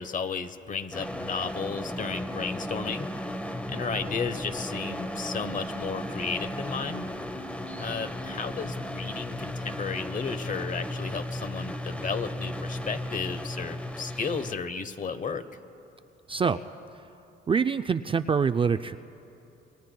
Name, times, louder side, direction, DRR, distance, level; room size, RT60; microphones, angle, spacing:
voice 1, 0.0-3.1 3.7-7.1 7.8-15.4, left 5 dB, 40° left, 11 dB, 1.0 m, -33 dB
Lynchian AC Tone, 0.9-14.6, left 1 dB, 5° left, 0.9 m, -35 dB
sound 1, 3.7-9.2, equal, 45° right, 1.4 m, -51 dB
voice 2, 16.3-16.6 17.5-19.0, right 6 dB, 25° right, 10 dB, 0.4 m, -25 dB
28.0 x 23.0 x 2.2 m, 3.0 s
cardioid pair, 90°, 20 cm